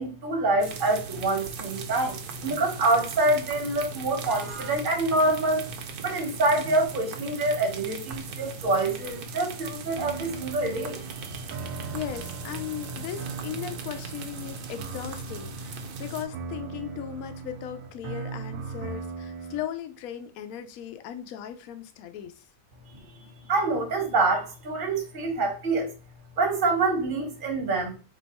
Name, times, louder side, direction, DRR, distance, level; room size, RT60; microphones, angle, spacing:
voice 1, 0.0-5.7 6.0-11.5 22.9-25.9 26.4-28.0, right 2 dB, 40° right, 0.9 m, -26 dB
sound 1, 0.6-16.2, right 4 dB, 70° right, 1.0 m, -39 dB
sound 2, 10.0-19.6, right 5 dB, 85° right, 1.3 m, -39 dB
voice 2, 11.9-22.4, left 11 dB, 70° left, 0.8 m, -37 dB
3.3 x 3.0 x 4.1 m
omnidirectional pair, 2.0 m